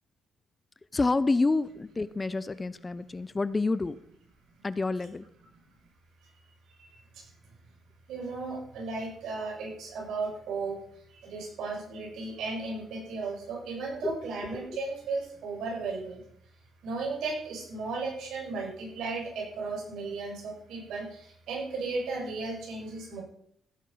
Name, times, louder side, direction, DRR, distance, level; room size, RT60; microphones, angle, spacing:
voice 1, 0.9-4.0 4.6-5.3 14.0-14.2 14.7-14.8, left 3 dB, 25° left, 16 dB, 0.6 m, -28 dB
voice 2, 6.8-7.3 8.1-10.8 11.1-16.2 16.8-23.2, right 3 dB, 80° right, -1 dB, 5.9 m, -35 dB
16.5 x 8.2 x 5.5 m, 0.68 s
cardioid pair, 90°, 0 cm